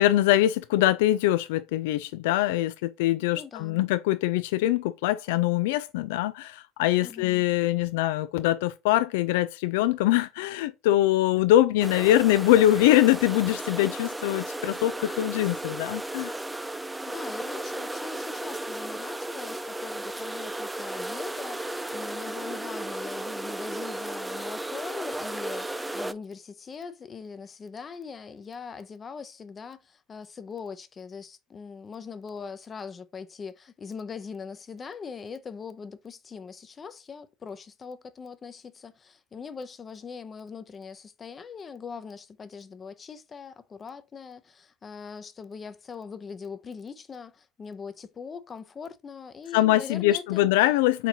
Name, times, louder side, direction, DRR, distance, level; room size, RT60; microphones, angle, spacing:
voice 1, 0.0-16.3 49.5-51.1, left 14 dB, 80° left, 0.3 m, -23 dB
voice 2, 3.3-3.9 7.0-7.4 16.7-50.5, left 5 dB, 30° left, 0.6 m, -41 dB
sound 1, 11.8-26.1, right 1 dB, 10° right, 0.4 m, -34 dB
4.5 x 3.8 x 2.8 m
supercardioid pair, 90°, 0 cm